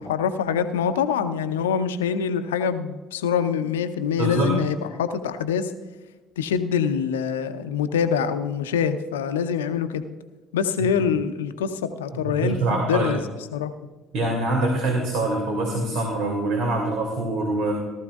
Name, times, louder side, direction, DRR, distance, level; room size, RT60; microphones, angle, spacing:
voice 1, 0.1-5.7 6.4-10.0 10.5-13.2 13.5-13.7, left 7 dB, 75° left, 10 dB, 0.7 m, -25 dB
voice 2, 4.2-4.6 12.3-13.2 14.1-17.7, right 2 dB, 60° right, 0 dB, 2.5 m, -24 dB
18.0 x 13.0 x 2.4 m, 1.3 s
figure-of-eight pair, 55°, 0 cm